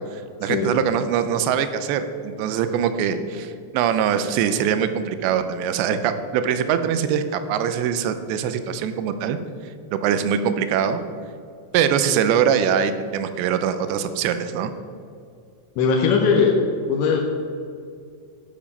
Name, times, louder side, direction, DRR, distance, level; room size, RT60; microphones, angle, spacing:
voice 1, 0.1-9.4 9.9-11.0 11.7-14.7, right 8 dB, 85° right, 10 dB, 2.9 m, -23 dB
voice 2, 15.8-16.6 16.9-17.2, left 5 dB, 90° left, 1 dB, 3.2 m, -19 dB
12.0 x 7.3 x 5.6 m, 2.4 s
omnidirectional pair, 5.1 m